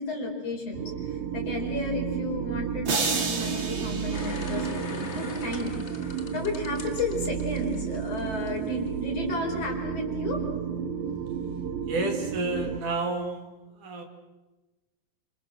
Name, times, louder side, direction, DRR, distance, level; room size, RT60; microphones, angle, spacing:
voice 1, 0.0-10.4, left 3 dB, 45° left, 1 dB, 5.5 m, -33 dB
sound 1, 0.7-12.8, right 8 dB, 85° right, 3.0 m, -32 dB
sound 2, 2.9-5.1, right 4 dB, 35° right, 3.0 m, -31 dB
sound 3, 4.1-8.5 8.9-9.0, left 4 dB, 60° left, 0.7 m, -41 dB
voice 2, 11.9-13.5 13.8-14.0, right 2 dB, 60° right, 3 dB, 3.8 m, -30 dB
28.0 x 27.0 x 6.3 m, 1.1 s
omnidirectional pair, 4.1 m